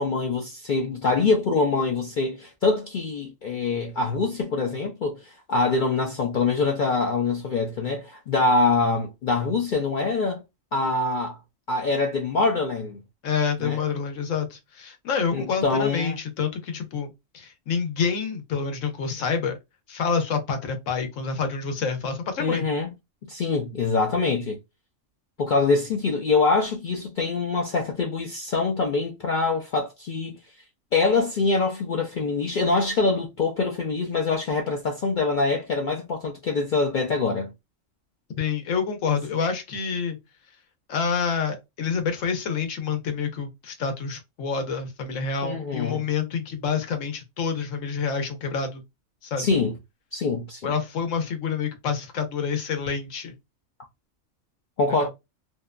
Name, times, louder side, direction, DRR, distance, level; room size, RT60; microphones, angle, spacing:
voice 1, 0.0-10.4 10.7-11.4 11.7-13.0 13.6-13.8 15.3-16.2 22.4-22.9 23.3-24.6 25.4-30.4 30.9-37.5 45.4-46.0 49.4-49.7 50.1-50.7 54.8-55.1, left 3 dB, 60° left, 0.5 m, -24 dB
voice 2, 13.2-19.6 19.9-22.6 38.4-40.2 40.9-48.8 49.2-49.5 50.6-53.4 54.9-55.1, left 6 dB, 85° left, 1.1 m, -28 dB
2.7 x 2.1 x 2.3 m
omnidirectional pair, 1.3 m